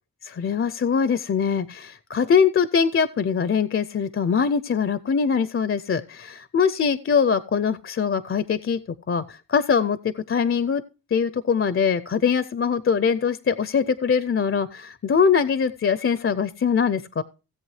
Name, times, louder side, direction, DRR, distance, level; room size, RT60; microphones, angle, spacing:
voice 1, 0.2-8.8 9.1-10.8 11.1-17.2, left 6 dB, 40° left, 15 dB, 0.4 m, -22 dB
17.0 x 7.9 x 3.1 m, 0.31 s
wide cardioid pair, 180°, 35 cm